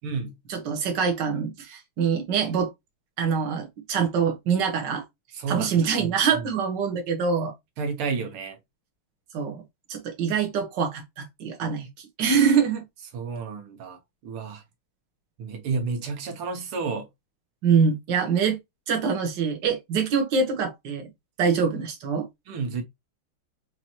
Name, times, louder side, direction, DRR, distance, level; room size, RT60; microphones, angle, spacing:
voice 1, 0.5-2.7 3.2-5.0 5.5-7.5 9.3-9.6 9.9-11.9 12.2-12.8 17.6-18.6 18.9-21.1 21.4-22.3, right 6 dB, 55° right, 1.8 m, -24 dB
voice 2, 5.3-6.5 7.8-8.6 13.1-14.6 15.4-17.1 22.5-22.8, right 4 dB, 85° right, 1.9 m, -31 dB
5.8 x 2.9 x 2.9 m
omnidirectional pair, 2.4 m